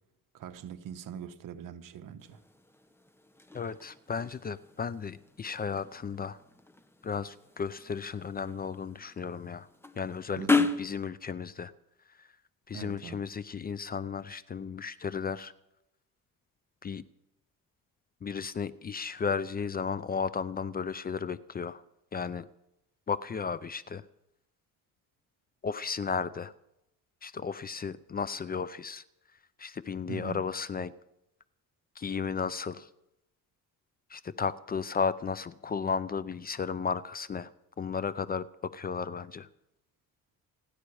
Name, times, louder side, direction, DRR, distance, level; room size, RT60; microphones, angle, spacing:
voice 1, 0.3-2.4 10.4-10.7 12.7-13.2 30.1-30.4, right 8 dB, 65° right, 1.3 m, -42 dB
sound 1, 2.2-10.9, left 3 dB, 5° left, 1.0 m, -35 dB
voice 2, 3.5-6.4 7.0-9.7 10.0-10.5 10.8-11.7 12.2-12.3 12.7-15.5 16.8-17.0 18.2-21.8 22.1-22.5 23.1-24.0 25.6-26.5 27.2-29.0 29.6-30.9 32.0-32.9 34.1-37.5 37.8-39.5, left 6 dB, 25° left, 0.5 m, -34 dB
29.0 x 9.8 x 4.8 m
cardioid pair, 120°, 35 cm